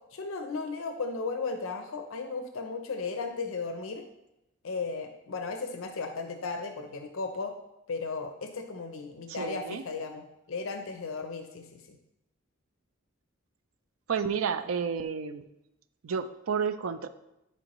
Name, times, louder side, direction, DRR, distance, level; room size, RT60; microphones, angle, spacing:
voice 1, 0.1-4.0 4.6-7.5 7.9-12.0, left 4 dB, 75° left, 5 dB, 0.6 m, -35 dB
voice 2, 9.3-9.8 14.1-15.4 16.0-17.1, right 6 dB, 85° right, 11 dB, 0.5 m, -31 dB
10.0 x 4.5 x 3.0 m, 0.89 s
head